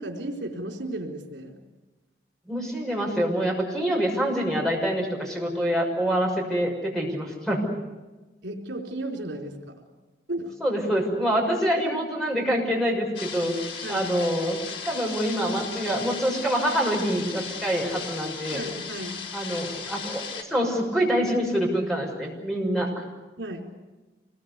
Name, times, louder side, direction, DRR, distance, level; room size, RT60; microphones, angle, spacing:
voice 1, 0.0-1.6 8.4-9.8 10.3-10.6 13.8-14.1 18.5-19.3 23.4-23.7, right 1 dB, 85° right, 1 dB, 4.2 m, -34 dB
voice 2, 2.5-7.7 10.6-13.5 13.9-14.6 14.9-18.6 19.3-22.9, equal, ahead, -1 dB, 6.2 m, -26 dB
sound 1, 13.2-20.4, left 6 dB, 75° left, 3.9 m, -36 dB
27.0 x 21.0 x 8.2 m, 1.2 s
head